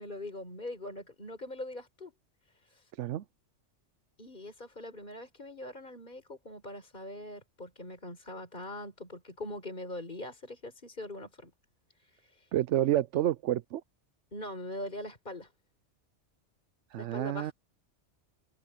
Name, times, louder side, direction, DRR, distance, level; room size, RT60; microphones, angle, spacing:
voice 1, 0.0-2.1 2.7-2.8 4.2-11.5 12.2-12.5 12.8-13.0 14.3-15.5 17.0-17.5, left 1 dB, 40° left, 4.6 m, -42 dB
voice 2, 12.5-13.8 16.9-17.5, right 13 dB, 80° right, 0.9 m, -29 dB
open air
omnidirectional pair, 1.2 m